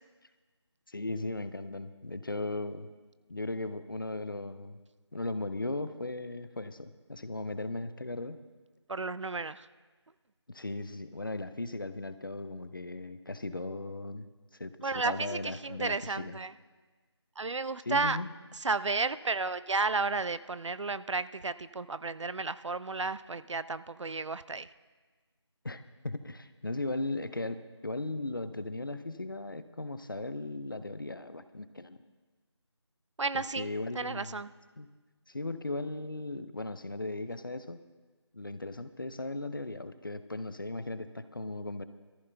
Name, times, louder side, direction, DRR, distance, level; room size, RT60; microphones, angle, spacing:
voice 1, 0.9-2.9 3.3-4.8 5.1-8.4 10.5-14.3 14.5-16.4 17.9-18.3 25.6-32.0 33.3-34.4 34.8-34.9 35.3-37.8 38.3-41.9, left 2 dB, 45° left, 11 dB, 0.5 m, -37 dB
voice 2, 8.9-9.7 14.8-16.5 17.4-18.2 18.5-24.7 33.2-33.7 33.9-34.5, right 3 dB, 85° right, 15 dB, 0.5 m, -32 dB
22.0 x 14.5 x 2.2 m, 1.3 s
figure-of-eight pair, 175°, 15 cm